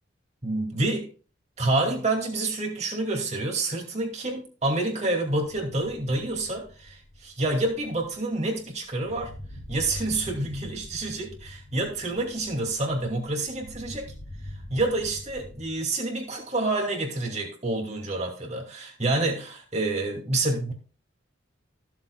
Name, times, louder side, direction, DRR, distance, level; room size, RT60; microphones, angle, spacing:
voice 1, 0.4-1.1 1.6-9.3 9.7-14.1 14.7-20.7, right 2 dB, 35° right, 2.4 m, -28 dB
sound 1, 5.4-15.8, left 1 dB, 65° left, 3.0 m, -44 dB
15.5 x 7.3 x 2.3 m
head